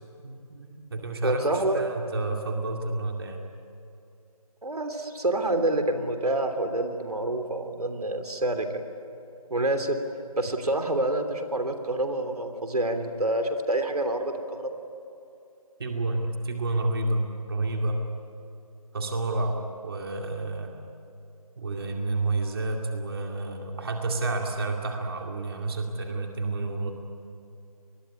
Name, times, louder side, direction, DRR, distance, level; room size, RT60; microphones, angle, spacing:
voice 1, 0.2-3.4 15.8-18.0 18.9-20.7 21.6-26.9, right 2 dB, 40° right, 2 dB, 2.4 m, -30 dB
voice 2, 1.2-1.8 4.6-8.8 9.5-10.0 10.4-14.8, right 1 dB, 80° right, 7 dB, 3.2 m, -27 dB
27.0 x 21.5 x 9.9 m, 2.6 s
figure-of-eight pair, 170°, 19 cm